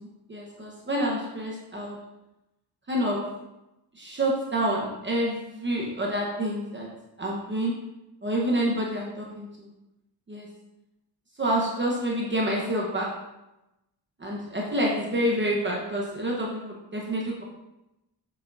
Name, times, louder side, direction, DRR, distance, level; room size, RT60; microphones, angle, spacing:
voice 1, 0.0-2.0 2.9-3.2 3.9-6.9 7.2-7.7 8.2-9.7 10.3-10.5 11.4-13.1 14.2-17.4, right 1 dB, 25° right, -3 dB, 1.0 m, -28 dB
7.2 x 6.4 x 2.6 m, 0.94 s
wide cardioid pair, 140°, 42 cm